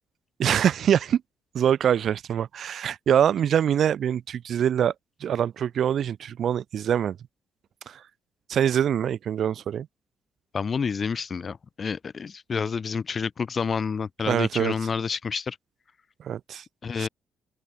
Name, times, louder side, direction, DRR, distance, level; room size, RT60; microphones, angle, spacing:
voice 1, 0.4-1.2 1.5-4.9 5.2-7.2 7.9-8.0 8.5-9.9 14.3-14.7 16.2-16.6 17.0-17.1, right 9 dB, 65° right, 2.3 m, -24 dB
voice 2, 10.5-15.6 16.8-17.1, left 5 dB, 40° left, 6.3 m, -29 dB
open air
cardioid pair, 90°, 0 cm